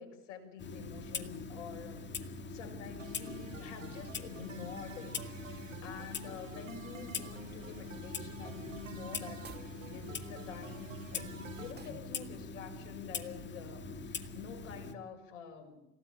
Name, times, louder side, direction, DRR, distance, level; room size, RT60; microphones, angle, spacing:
voice 1, 0.0-15.8, left 6 dB, 65° left, 3 dB, 6.6 m, -48 dB
Clock, 0.6-14.9, left 4 dB, 30° left, 2.3 m, -43 dB
sound 1, 3.0-11.7, right 6 dB, 85° right, 1.8 m, -51 dB
sound 2, 9.4-9.8 11.7-12.1, right 6 dB, 25° right, 2.5 m, -51 dB
28.0 x 17.5 x 8.8 m, 0.92 s
figure-of-eight pair, 70°, 38 cm